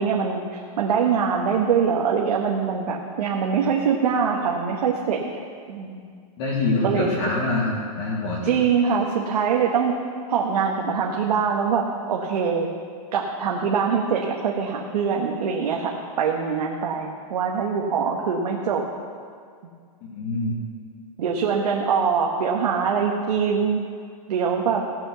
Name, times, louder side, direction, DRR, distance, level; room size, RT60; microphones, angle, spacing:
voice 1, 0.0-5.4 5.7-6.0 6.8-7.1 8.4-10.0 10.3-12.7 13.1-18.8 21.2-23.8 24.3-24.8, right 6 dB, 75° right, 0 dB, 1.4 m, -23 dB
voice 2, 6.4-8.6 20.0-20.6, left 2 dB, 40° left, -5 dB, 2.0 m, -25 dB
17.0 x 6.0 x 6.9 m, 2.1 s
supercardioid pair, 170°, 20 cm